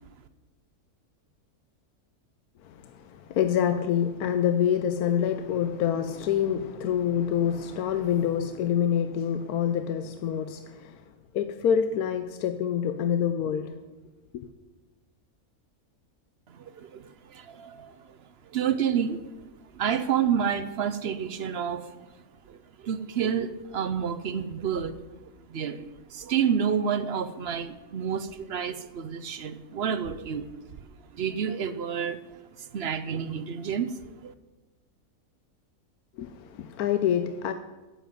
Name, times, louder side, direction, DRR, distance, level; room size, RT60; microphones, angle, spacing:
voice 1, 3.1-11.0 11.3-13.7 14.3-14.5 36.2-37.5, left 9 dB, 80° left, 1.1 m, -26 dB
voice 2, 16.5-17.9 18.5-19.2 19.7-21.9 22.5-25.0 25.5-30.5 31.1-32.2 32.6-34.3, right 7 dB, 55° right, 0.7 m, -29 dB
9.0 x 8.1 x 9.2 m
omnidirectional pair, 1.6 m